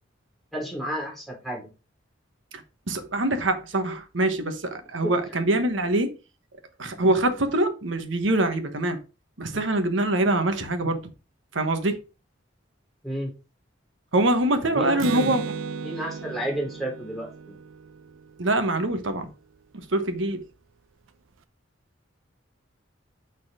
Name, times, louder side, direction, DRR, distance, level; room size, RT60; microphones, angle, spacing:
voice 1, 0.5-1.7 5.0-5.4 13.0-13.3 14.6-15.3 15.8-17.6, equal, ahead, 3.3 m, -32 dB
voice 2, 2.9-6.1 6.8-9.0 9.4-11.0 11.5-12.0 14.1-15.4 18.4-19.3 19.9-20.4, right 1 dB, 70° right, 1.2 m, -24 dB
Acoustic guitar, 15.0-18.7, right 5 dB, 90° right, 0.6 m, -34 dB
6.5 x 4.1 x 4.9 m
head